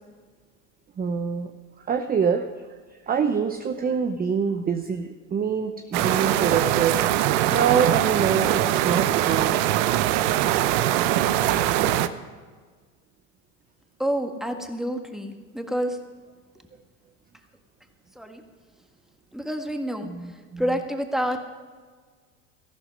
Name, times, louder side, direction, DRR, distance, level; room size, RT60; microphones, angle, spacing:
voice 1, 1.0-1.5 1.9-2.5 3.1-7.0 7.5-9.6 20.0-20.6, right 6 dB, 25° right, 7 dB, 0.7 m, -25 dB
sound 1, 5.9-12.1, right 13 dB, 65° right, 0.8 m, -22 dB
voice 2, 14.0-16.0 18.2-18.4 19.3-20.1 20.6-21.4, equal, ahead, 5 dB, 1.6 m, -28 dB
14.0 x 12.0 x 5.4 m, 1.5 s
hypercardioid pair, 85°, 38 cm